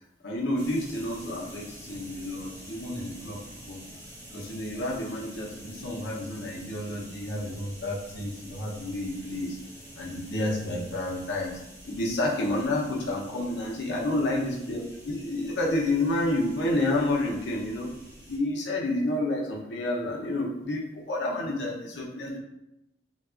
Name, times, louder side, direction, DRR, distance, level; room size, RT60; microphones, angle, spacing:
voice 1, 0.2-3.8 4.3-9.6 9.9-17.9 18.3-22.4, left 1 dB, 75° left, -2 dB, 0.7 m, -30 dB
sound 1, 0.6-18.4, equal, 25° right, 0.9 m, -47 dB
3.4 x 2.3 x 2.3 m, 0.90 s
head